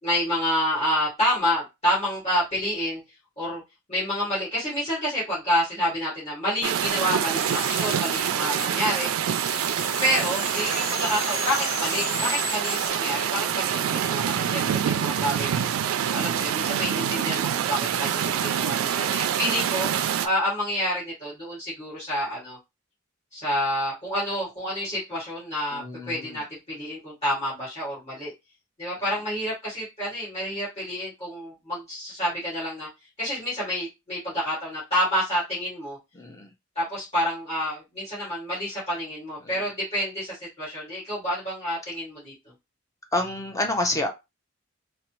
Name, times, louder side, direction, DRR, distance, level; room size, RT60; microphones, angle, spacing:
voice 1, 0.0-3.0 3.4-3.6 3.9-9.4 10.0-15.6 16.1-19.9 20.2-22.6 23.3-28.3 28.8-32.9 33.2-36.0 36.8-42.5, equal, 30° left, 2.1 m, -28 dB
sound 1, 6.6-20.3, right 9 dB, 80° right, 0.3 m, -26 dB
sound 2, 6.9-9.1 9.3-12.9, left 6 dB, 75° left, 0.6 m, -35 dB
voice 2, 14.4-14.7 25.7-26.4 36.1-36.5 43.1-44.1, left 2 dB, 15° left, 0.5 m, -29 dB
4.0 x 2.0 x 2.9 m
head